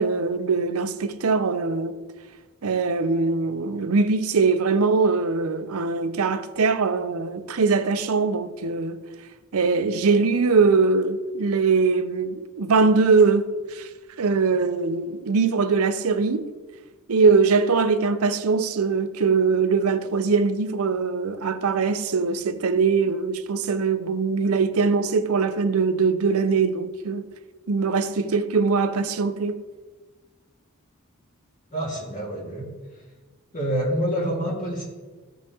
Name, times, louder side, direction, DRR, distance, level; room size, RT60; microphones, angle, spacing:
voice 1, 0.0-2.0 2.6-9.0 9.5-13.9 14.2-16.5 17.1-27.2 27.7-29.6, right 4 dB, 75° right, 0.6 m, -22 dB
voice 2, 31.7-32.7 33.5-34.8, equal, 35° left, 2.0 m, -27 dB
14.5 x 5.4 x 2.8 m
head